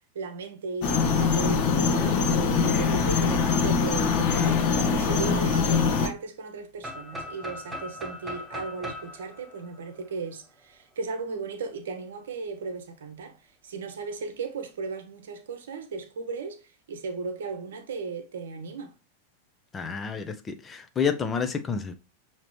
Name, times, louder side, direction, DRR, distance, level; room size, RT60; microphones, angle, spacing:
voice 1, 0.1-18.9, right 4 dB, 60° right, 0.8 m, -36 dB
sound 1, 0.8-6.1, left 5 dB, 45° left, 0.8 m, -23 dB
sound 2, 6.8-10.6, left 1 dB, 10° right, 1.0 m, -39 dB
voice 2, 19.7-21.9, left 6 dB, 20° left, 0.5 m, -29 dB
6.0 x 2.9 x 3.0 m
figure-of-eight pair, 90°, 0 cm